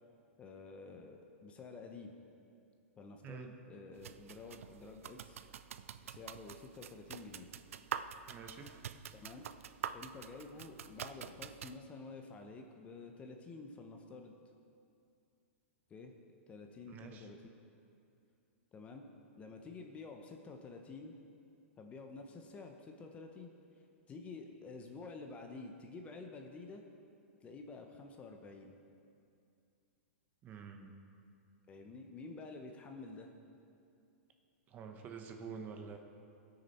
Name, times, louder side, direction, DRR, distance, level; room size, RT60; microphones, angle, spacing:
voice 1, 0.4-2.1 3.0-5.4 6.0-7.5 9.1-9.5 9.9-14.4 15.9-16.1 16.5-17.4 18.7-19.1 19.4-21.2 21.8-23.5 24.1-26.8 27.4-28.7 31.7-33.3, left 3 dB, 15° left, 4 dB, 0.7 m, -50 dB
sound 1, 4.0-11.8, right 8 dB, 80° right, 0.5 m, -46 dB
voice 2, 8.3-8.7 16.9-17.3 30.4-30.9 34.7-36.0, right 6 dB, 25° right, 5 dB, 0.9 m, -48 dB
19.0 x 6.6 x 4.2 m, 2.5 s
hypercardioid pair, 150°, 7 cm